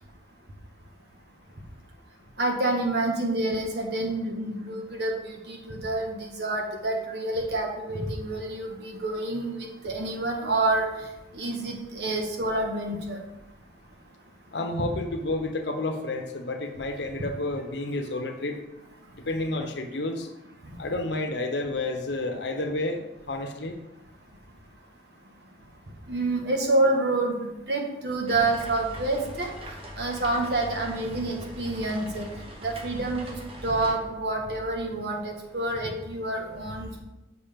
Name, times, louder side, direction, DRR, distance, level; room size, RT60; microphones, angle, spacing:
voice 1, 2.4-10.9 11.3-13.2 14.8-14.9 26.1-29.5 30.0-32.2 32.6-33.4 33.6-37.0, right 2 dB, 70° right, 1 dB, 1.4 m, -28 dB
voice 2, 14.5-18.6 19.2-20.3 20.8-23.8, left 2 dB, 75° left, 6 dB, 0.9 m, -30 dB
sound 1, 28.3-33.9, equal, 30° right, 1.2 m, -41 dB
7.3 x 6.1 x 3.6 m, 0.94 s
head